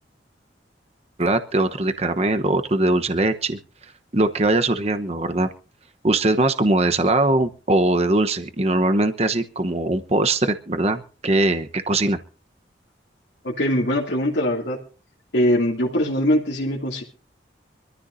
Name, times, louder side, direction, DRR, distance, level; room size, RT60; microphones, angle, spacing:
voice 1, 1.2-3.6 4.1-5.5 6.0-12.2, right 2 dB, 35° right, 8 dB, 1.0 m, -21 dB
voice 2, 13.4-14.8 15.3-17.0, equal, 80° left, -4 dB, 2.7 m, -22 dB
25.0 x 14.0 x 2.7 m, 0.35 s
head